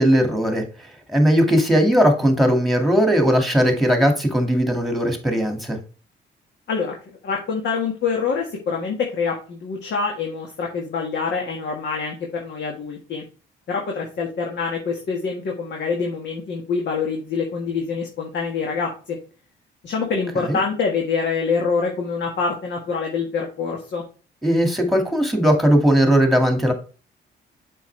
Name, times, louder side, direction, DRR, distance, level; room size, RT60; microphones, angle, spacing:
voice 1, 0.0-5.8 20.4-20.6 24.4-26.7, equal, ahead, 4 dB, 2.2 m, -18 dB
voice 2, 7.2-13.2 13.7-19.2 19.8-24.0, left 5 dB, 65° left, 0 dB, 1.8 m, -25 dB
7.1 x 5.5 x 3.3 m, 0.36 s
cardioid pair, 90°, 20 cm